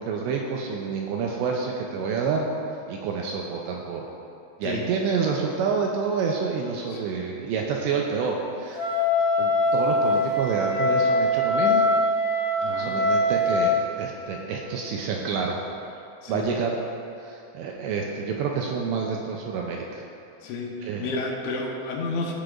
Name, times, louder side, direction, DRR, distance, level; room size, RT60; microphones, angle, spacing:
voice 1, 0.0-2.5 2.9-4.1 4.6-8.8 9.4-11.8 12.8-15.6 16.3-16.8 17.2-20.0 20.8-21.1, right 5 dB, 80° right, 0 dB, 2.6 m, -28 dB
Wind instrument woodwind instrument, 8.7-13.8, left 1 dB, 45° left, 3.2 m, -22 dB
voice 2, 12.6-13.0 16.2-16.5 20.4-22.3, left 3 dB, 80° left, -1 dB, 3.3 m, -31 dB
17.0 x 6.8 x 2.5 m, 2.7 s
omnidirectional pair, 5.5 m